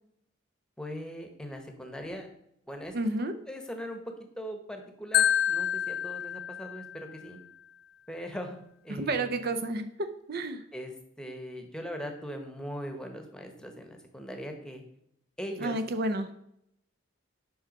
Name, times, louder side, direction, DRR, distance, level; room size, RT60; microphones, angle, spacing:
voice 1, 0.8-2.3 2.7-4.0 4.4-7.4 8.1-8.6 8.8-9.4 10.7-14.8 15.4-15.8, equal, 5° left, 4 dB, 1.0 m, -40 dB
voice 2, 2.9-3.3 8.9-10.6 15.6-16.3, right 2 dB, 50° right, 9 dB, 0.5 m, -31 dB
Marimba xylophone, 5.1-7.2, left 9 dB, 50° left, 0.4 m, -28 dB
7.7 x 5.4 x 5.3 m, 0.76 s
head